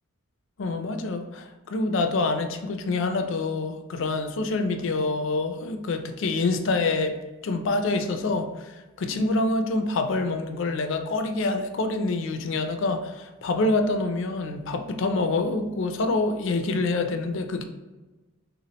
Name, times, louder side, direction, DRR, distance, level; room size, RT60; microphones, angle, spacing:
voice 1, 0.6-7.2 7.4-17.6, left 3 dB, 60° left, 7 dB, 0.4 m, -26 dB
3.5 x 3.0 x 2.8 m, 1.2 s
head